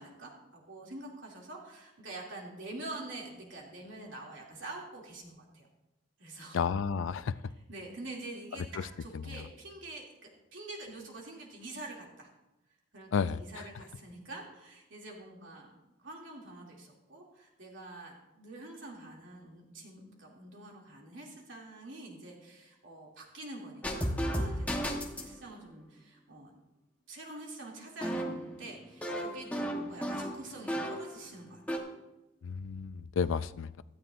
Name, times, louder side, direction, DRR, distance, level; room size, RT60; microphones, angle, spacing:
voice 1, 0.0-5.7 6.2-6.7 7.7-12.3 12.9-15.7 16.0-26.5 27.1-31.8, right 2 dB, 75° right, -2 dB, 2.7 m, -46 dB
voice 2, 6.5-7.4 8.7-8.9 9.1-9.5 13.1-13.7 32.4-33.8, left 6 dB, 80° left, 16 dB, 0.4 m, -32 dB
sound 1, 23.8-25.3 28.0-31.2 31.5-31.8, equal, 5° left, 1.1 m, -34 dB
17.0 x 12.5 x 2.6 m, 0.99 s
head